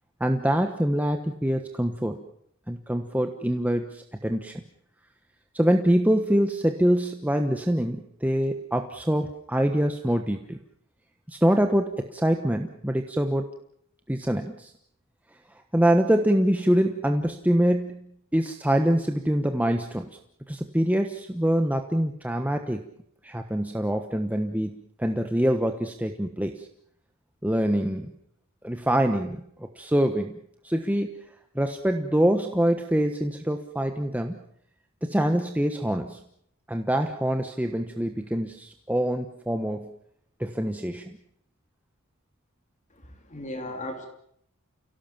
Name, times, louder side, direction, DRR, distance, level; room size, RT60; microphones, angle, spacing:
voice 1, 0.2-2.2 2.7-4.6 5.5-10.6 11.3-13.5 14.1-14.7 15.7-18.0 18.3-20.1 20.5-22.8 23.2-26.7 27.4-28.1 28.6-30.4 30.6-31.1 31.5-34.4 35.0-36.2 36.7-39.9 40.4-41.2, equal, 5° right, 6 dB, 1.1 m, -25 dB
voice 2, 43.0-44.1, left 1 dB, 35° left, 5 dB, 3.0 m, -36 dB
29.5 x 17.5 x 7.3 m, 0.71 s
head